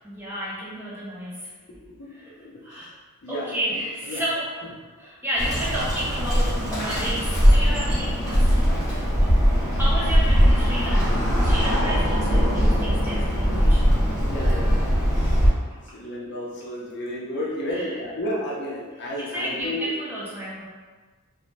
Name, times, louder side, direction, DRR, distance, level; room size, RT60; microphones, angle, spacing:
voice 1, 0.0-1.5 2.1-2.2 2.6-2.9 3.3-4.5 5.0-9.3 9.6-13.8 17.7-17.9 19.2-20.7, equal, 10° right, -7 dB, 0.4 m, -32 dB
voice 2, 1.8-2.9 3.2-4.2 4.6-4.7 14.3-15.4 15.9-19.9, left 1 dB, 50° left, -4 dB, 0.5 m, -33 dB
Bird, 5.4-15.5, equal, 15° left, 0.8 m, -20 dB
2.5 x 2.1 x 3.0 m, 1.4 s
head